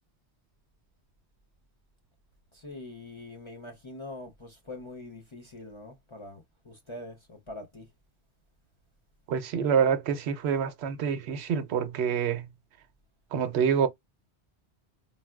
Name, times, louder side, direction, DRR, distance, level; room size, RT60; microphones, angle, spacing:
voice 1, 2.5-7.9, left 2 dB, 35° left, 0.5 m, -44 dB
voice 2, 9.3-12.5 13.3-13.9, right 7 dB, 75° right, 0.8 m, -26 dB
4.2 x 2.0 x 2.2 m
omnidirectional pair, 1.1 m